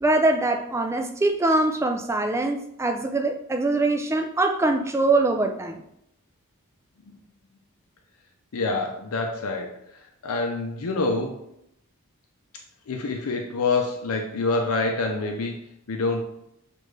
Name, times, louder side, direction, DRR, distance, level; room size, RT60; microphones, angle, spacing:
voice 1, 0.0-5.8, right 2 dB, 10° right, 4 dB, 0.3 m, -23 dB
voice 2, 8.5-11.5 12.9-16.2, left 3 dB, 75° left, 2 dB, 0.5 m, -27 dB
6.3 x 2.5 x 3.2 m, 0.77 s
head